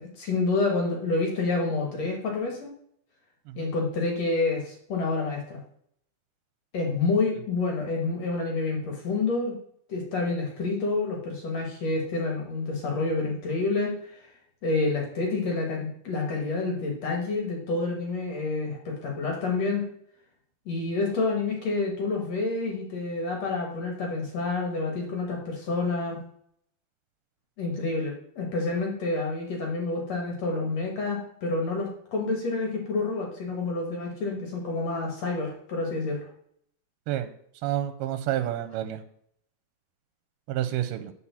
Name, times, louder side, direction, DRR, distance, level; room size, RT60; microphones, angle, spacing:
voice 1, 0.0-2.7 3.6-5.6 6.7-9.5 9.9-14.3 14.6-19.9 20.7-26.2 27.6-36.3, left 3 dB, 55° left, 0 dB, 2.0 m, -28 dB
voice 2, 37.6-39.0 40.5-41.1, right 12 dB, 90° right, 10 dB, 2.6 m, -29 dB
8.8 x 4.3 x 7.0 m, 0.68 s
omnidirectional pair, 4.4 m